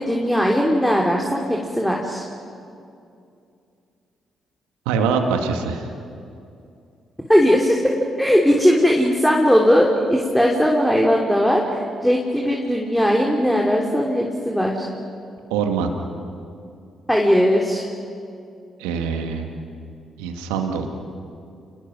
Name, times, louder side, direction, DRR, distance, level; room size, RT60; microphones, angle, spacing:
voice 1, 0.0-2.2 7.3-14.9 17.1-17.9, equal, 5° left, -1 dB, 3.1 m, -18 dB
voice 2, 4.9-5.9 15.5-15.9 18.8-19.5 20.2-20.9, right 6 dB, 80° right, 4 dB, 1.9 m, -23 dB
29.0 x 20.5 x 6.2 m, 2.5 s
hypercardioid pair, 45°, 0 cm